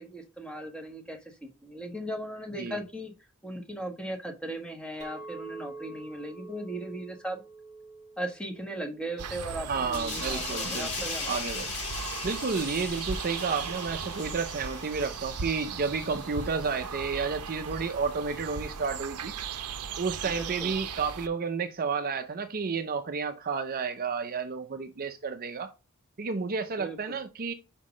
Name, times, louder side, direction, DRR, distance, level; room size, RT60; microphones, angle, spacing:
voice 1, 0.0-3.1 3.4-7.4 8.2-11.4 20.2-20.7 26.8-27.2, right 1 dB, 5° left, 1.4 m, -38 dB
Chink clink, 5.0-10.2, right 2 dB, 15° right, 1.6 m, -47 dB
sound 1, 9.2-21.3, right 6 dB, 90° right, 0.6 m, -38 dB
voice 2, 9.6-11.7 12.2-19.3 20.0-25.7 26.2-27.5, right 5 dB, 40° right, 0.6 m, -31 dB
sound 2, 9.9-17.1 17.5-17.7, left 4 dB, 50° left, 4.4 m, -39 dB
5.7 x 5.2 x 4.9 m
head